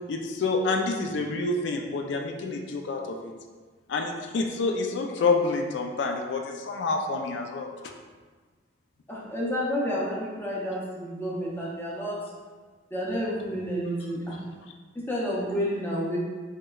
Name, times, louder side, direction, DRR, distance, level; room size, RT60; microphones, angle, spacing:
voice 1, 0.1-3.3 3.9-7.7, left 3 dB, 65° left, 3 dB, 0.3 m, -28 dB
voice 2, 9.1-12.2 12.9-14.4 15.1-16.2, equal, 10° left, -6 dB, 0.5 m, -30 dB
3.2 x 2.9 x 2.3 m, 1.4 s
head